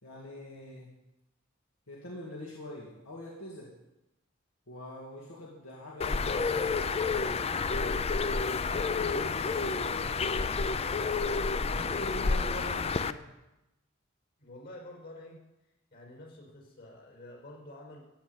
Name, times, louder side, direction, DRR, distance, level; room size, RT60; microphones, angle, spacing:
voice 1, 0.0-0.9 1.9-3.7 4.7-7.1 7.7-10.6 11.7-13.2, left 1 dB, 85° left, -4 dB, 2.5 m, -44 dB
Bird, 6.0-13.1, left 4 dB, 30° left, 0.4 m, -30 dB
voice 2, 14.4-15.4 15.9-18.0, left 1 dB, 55° left, -1 dB, 5.7 m, -48 dB
15.5 x 5.9 x 9.4 m, 0.92 s
head